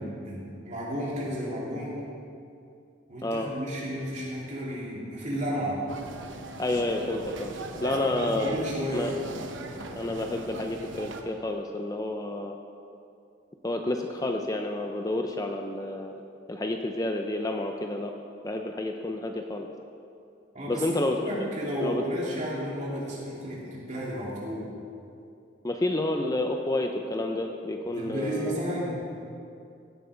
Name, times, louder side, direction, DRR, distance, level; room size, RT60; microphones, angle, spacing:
voice 1, 0.0-2.0 3.1-5.8 7.8-9.2 20.5-24.7 27.9-29.0, equal, 40° right, -5 dB, 3.2 m, -33 dB
sound 1, 5.9-11.2, right 2 dB, 80° right, 1.0 m, -38 dB
voice 2, 6.6-7.5 7.8-8.6 8.9-9.1 9.9-12.5 13.6-16.2 16.5-18.1 18.4-19.7 20.7-21.2 21.8-22.0 25.6-28.6, left 2 dB, 20° left, 3 dB, 0.6 m, -29 dB
16.5 x 8.3 x 5.1 m, 2.5 s
head